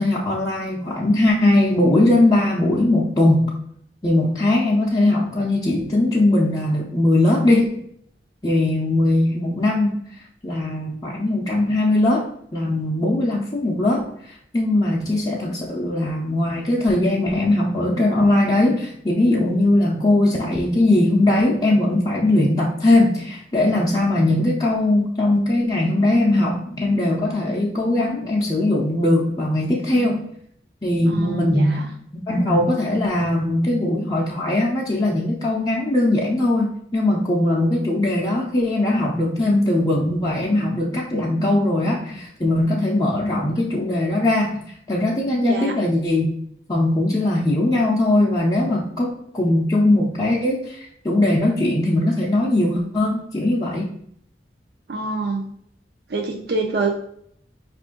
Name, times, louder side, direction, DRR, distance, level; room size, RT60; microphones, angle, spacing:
voice 1, 0.0-3.5 4.0-7.8 8.4-10.0 10.4-14.0 14.5-30.3 30.8-31.9 32.1-46.3 46.7-49.1 49.3-53.9, left 1 dB, 20° left, -4 dB, 0.5 m, -20 dB
voice 2, 31.1-31.9 45.4-45.8 54.9-55.4 56.1-57.0, right 3 dB, 60° right, 1 dB, 0.5 m, -26 dB
5.1 x 2.5 x 3.7 m, 0.67 s
head